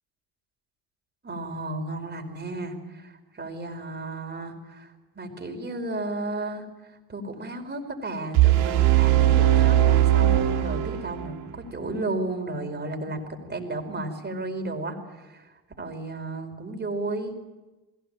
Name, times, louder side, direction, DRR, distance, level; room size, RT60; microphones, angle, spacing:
voice 1, 1.2-17.3, right 2 dB, 25° right, 4 dB, 5.0 m, -34 dB
sound 1, 8.3-11.4, right 13 dB, 75° right, 2.7 m, -19 dB
21.5 x 17.0 x 9.0 m, 1.2 s
hypercardioid pair, 70°, 43 cm